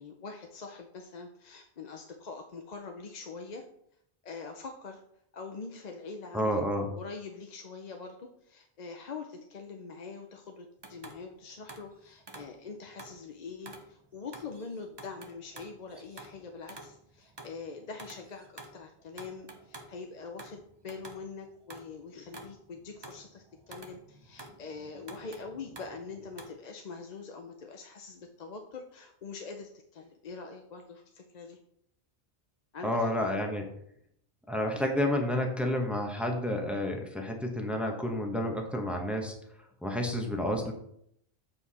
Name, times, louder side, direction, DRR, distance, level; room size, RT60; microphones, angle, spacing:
voice 1, 0.0-3.6 4.2-5.0 5.3-6.6 6.9-18.5 18.7-31.6 32.7-33.4, left 4 dB, 50° left, 4 dB, 0.7 m, -44 dB
voice 2, 6.3-6.9 32.8-33.7 34.5-39.3 39.8-40.7, left 1 dB, ahead, 2 dB, 1.0 m, -30 dB
sound 1, 10.8-13.3 13.7-26.5, right 2 dB, 25° right, 0.8 m, -50 dB
7.8 x 4.6 x 4.1 m, 0.72 s
omnidirectional pair, 1.0 m